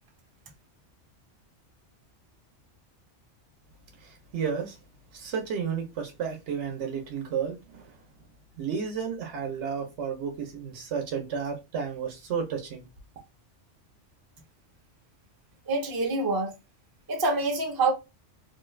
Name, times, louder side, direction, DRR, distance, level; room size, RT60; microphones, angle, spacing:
voice 1, 4.0-4.8 5.1-8.0 8.6-12.8, right 6 dB, 70° right, 1.0 m, -32 dB
voice 2, 15.7-16.5 17.1-17.9, right 3 dB, 25° right, 0.5 m, -26 dB
2.7 x 2.3 x 3.1 m
omnidirectional pair, 1.2 m